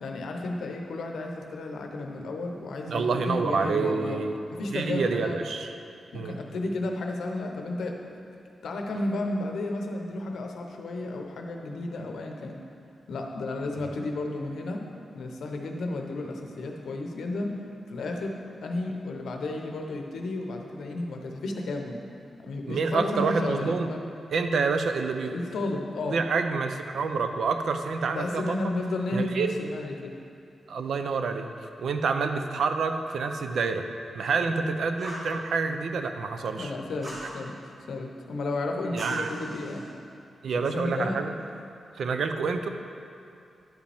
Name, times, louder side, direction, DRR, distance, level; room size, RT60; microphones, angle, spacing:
voice 1, 0.0-4.2 4.6-5.4 6.1-8.0 8.6-12.6 13.1-14.9 15.1-17.6 17.9-22.0 22.4-24.0 25.2-26.2 28.2-30.1 34.5-34.7 36.5-37.6 37.9-39.9 40.5-41.2, left 2 dB, 75° left, 2 dB, 0.7 m, -32 dB
voice 2, 2.9-4.3 4.7-5.7 6.1-6.4 22.7-23.9 24.3-25.3 26.1-28.6 29.1-29.5 30.7-31.5 31.8-33.9 34.2-36.7 38.9-39.3 40.4-41.3 42.0-42.7, right 4 dB, 65° right, 7 dB, 0.4 m, -27 dB
Fire, 35.0-35.3 37.0-37.3 39.0-39.9, equal, 35° right, 1.6 m, -40 dB
10.5 x 5.1 x 3.4 m, 2.5 s
wide cardioid pair, 175°, 0 cm